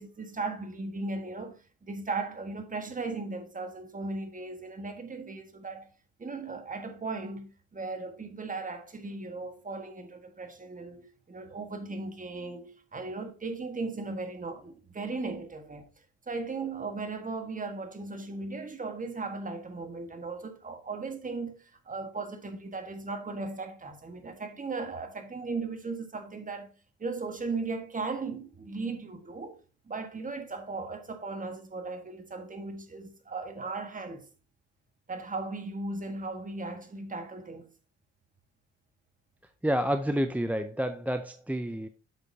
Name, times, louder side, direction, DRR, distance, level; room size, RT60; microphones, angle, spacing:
voice 1, 0.0-5.9 6.2-15.9 16.3-26.7 27.0-29.6 29.9-34.3 35.1-37.7, right 3 dB, 25° right, 1.6 m, -37 dB
voice 2, 39.6-41.9, equal, 5° right, 0.5 m, -29 dB
8.0 x 6.4 x 2.8 m
cardioid pair, 90°, 30 cm